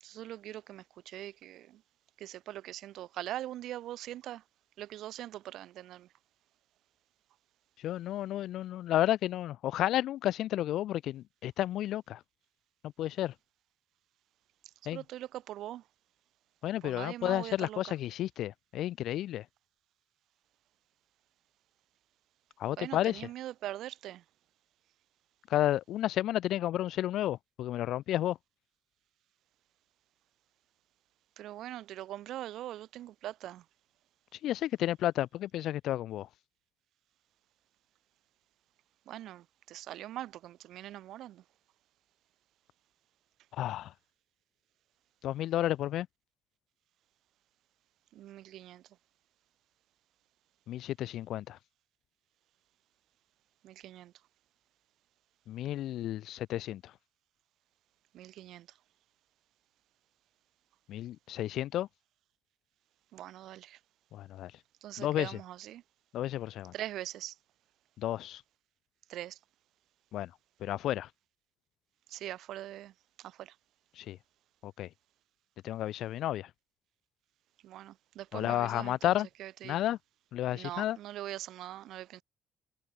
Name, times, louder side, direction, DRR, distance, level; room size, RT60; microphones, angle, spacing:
voice 1, 0.0-1.8 2.2-4.4 4.8-6.1 14.9-15.8 16.8-17.8 22.8-24.2 31.4-33.7 39.1-41.4 48.1-48.8 53.6-54.1 58.1-58.8 63.1-63.8 64.8-65.8 66.7-67.4 69.1-69.4 72.1-73.6 77.6-79.8 80.5-82.2, right 13 dB, 75° right, 1.6 m, -42 dB
voice 2, 7.8-12.2 13.0-13.3 14.8-15.0 16.6-19.4 22.6-23.2 25.5-28.4 34.4-36.3 43.5-43.9 45.2-46.1 50.7-51.6 55.5-56.9 60.9-61.9 64.1-64.5 65.0-65.4 66.1-66.7 68.0-68.4 70.1-70.3 70.6-71.1 74.0-74.2 74.6-74.9 75.6-76.5 78.3-79.3 79.6-80.0 80.3-81.0, left 13 dB, 75° left, 1.3 m, -32 dB
cardioid pair, 145°, 0 cm